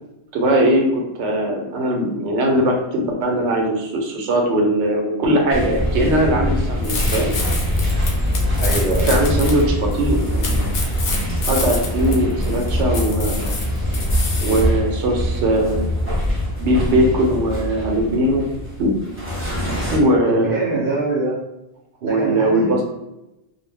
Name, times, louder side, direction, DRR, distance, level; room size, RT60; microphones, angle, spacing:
voice 1, 0.3-7.3 9.1-10.6 11.5-13.5 14.4-15.8 16.6-18.5 18.8-18.9 19.9-20.8 22.0-22.8, right 1 dB, 90° right, 2 dB, 0.9 m, -20 dB
sound 1, 5.5-20.0, equal, 15° right, 0.7 m, -23 dB
sound 2, 6.8-9.6 9.9-14.6, left 3 dB, 65° left, 0.8 m, -29 dB
voice 2, 8.6-9.2 20.3-21.4 22.0-22.8, right 2 dB, 60° right, -5 dB, 0.7 m, -24 dB
2.2 x 2.1 x 3.2 m, 0.90 s
omnidirectional pair, 1.1 m